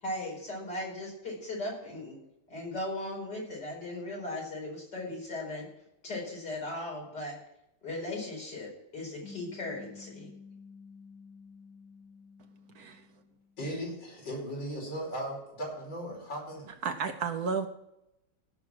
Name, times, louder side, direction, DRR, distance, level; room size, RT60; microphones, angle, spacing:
voice 1, 0.0-2.2 2.5-5.7 6.0-7.4 7.8-10.3, left 1 dB, 65° left, -2 dB, 5.3 m, -37 dB
sound 1, 9.2-13.9, left 5 dB, 40° right, 5.5 m, -51 dB
voice 2, 13.6-16.7, equal, 80° left, -3 dB, 5.6 m, -37 dB
voice 3, 16.8-17.7, right 5 dB, 60° right, 7 dB, 1.2 m, -32 dB
16.5 x 6.1 x 6.0 m, 0.84 s
omnidirectional pair, 2.0 m